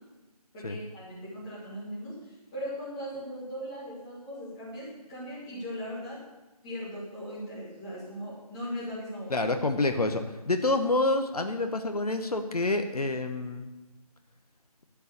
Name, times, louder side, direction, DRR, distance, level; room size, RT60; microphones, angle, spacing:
voice 1, 0.5-6.2 6.6-9.3, equal, 10° left, -8 dB, 1.6 m, -39 dB
voice 2, 9.3-13.7, left 2 dB, 70° left, 7 dB, 1.0 m, -27 dB
11.5 x 4.6 x 8.4 m, 1.1 s
figure-of-eight pair, 170°, 20 cm